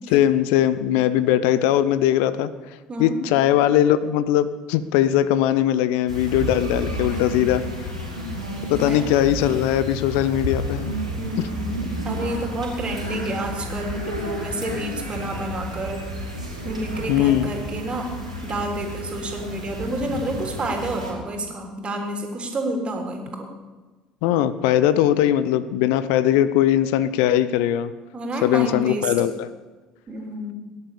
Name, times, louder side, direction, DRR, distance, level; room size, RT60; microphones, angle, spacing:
voice 1, 0.1-2.5 3.0-7.9 8.7-10.9 11.4-11.5 17.1-17.5 24.2-27.9 28.4-29.5, left 11 dB, 60° left, 15 dB, 0.6 m, -20 dB
sound 1, 6.1-21.1, equal, 90° right, 4.0 m, -31 dB
voice 2, 11.2-11.8 12.1-16.0 16.6-18.1 18.4-23.5 28.1-29.1 30.1-30.5, right 1 dB, 30° right, 2 dB, 3.6 m, -29 dB
18.5 x 11.0 x 6.9 m, 1.3 s
figure-of-eight pair, 60°, 4 cm